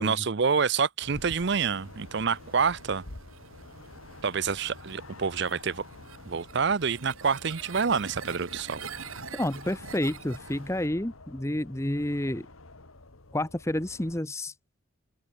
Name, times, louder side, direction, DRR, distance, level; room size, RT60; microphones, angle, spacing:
voice 1, 0.0-3.0 4.2-5.8 6.3-8.8, right 5 dB, 55° right, 0.6 m, -27 dB
sound 1, 1.0-14.2, left 2 dB, 85° left, 2.4 m, -49 dB
sound 2, 1.0-10.9, right 5 dB, 85° right, 4.0 m, -46 dB
voice 2, 9.3-12.5 13.3-14.5, left 1 dB, 15° left, 1.0 m, -30 dB
open air
head